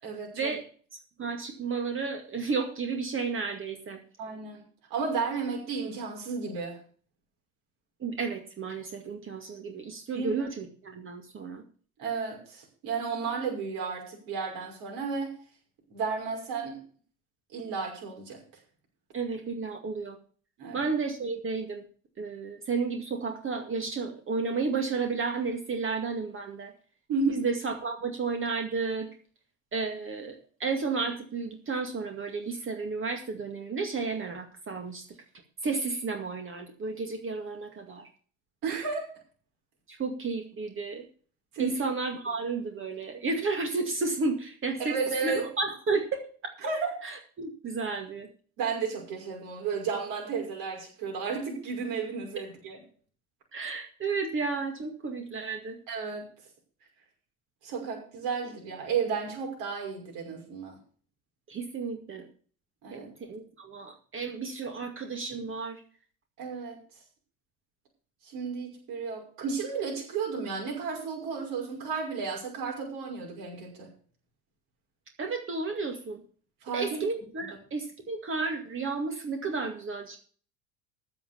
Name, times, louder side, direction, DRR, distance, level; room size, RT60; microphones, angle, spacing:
voice 1, 0.0-0.5 4.2-4.6 4.9-6.8 10.1-10.3 12.0-15.3 15.9-16.8 17.5-18.4 20.6-20.9 27.1-27.4 38.6-39.1 41.5-41.8 44.8-45.5 46.6-46.9 48.6-52.8 55.9-56.2 57.6-60.8 62.8-63.1 66.4-66.8 68.3-73.9 76.6-77.0, right 5 dB, 50° right, 0 dB, 6.0 m, -33 dB
voice 2, 1.2-4.0 8.0-11.6 19.1-20.2 20.7-21.8 22.2-26.7 27.3-29.1 29.7-35.0 35.6-38.1 39.9-41.0 41.6-45.0 45.2-46.2 47.0-48.3 53.5-55.8 61.5-62.3 62.9-63.0 63.3-65.8 75.2-76.2 76.7-80.2, right 4 dB, 30° right, 5 dB, 2.2 m, -32 dB
14.5 x 5.9 x 6.9 m, 0.42 s
figure-of-eight pair, 65°, 42 cm